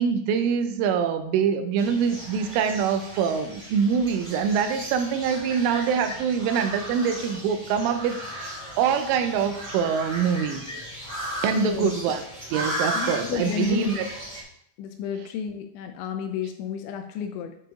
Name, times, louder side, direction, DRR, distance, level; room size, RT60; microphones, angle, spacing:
voice 1, 0.0-10.6 11.4-12.2 12.5-14.1, right 7 dB, 85° right, 7 dB, 3.2 m, -24 dB
sound 1, 1.8-14.4, right 1 dB, 20° right, 1.0 m, -36 dB
voice 2, 11.6-11.9 12.9-14.0 14.8-17.6, left 8 dB, 85° left, 6 dB, 2.7 m, -31 dB
11.5 x 4.9 x 3.7 m, 0.68 s
omnidirectional pair, 5.6 m